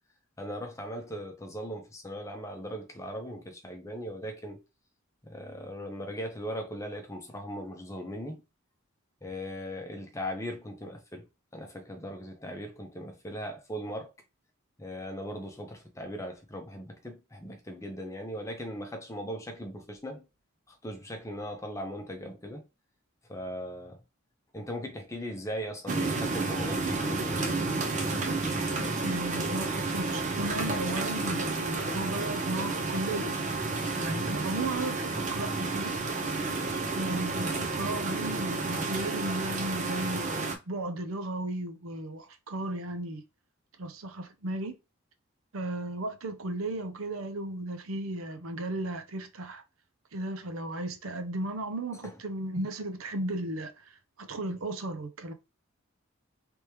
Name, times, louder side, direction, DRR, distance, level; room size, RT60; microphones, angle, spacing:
voice 1, 0.4-4.6 5.2-8.4 9.2-11.2 11.5-14.1 14.8-20.2 20.7-22.6 23.3-24.0 24.5-27.5 52.0-52.1, equal, 15° left, 0.8 m, -39 dB
sound 1, 25.9-40.6, right 3 dB, 35° right, 0.6 m, -31 dB
voice 2, 29.0-33.4 33.9-36.0 36.9-43.2 43.8-44.8 45.5-49.6 50.1-53.8 54.2-55.3, right 1 dB, 80° right, 0.7 m, -35 dB
3.4 x 3.1 x 2.9 m
head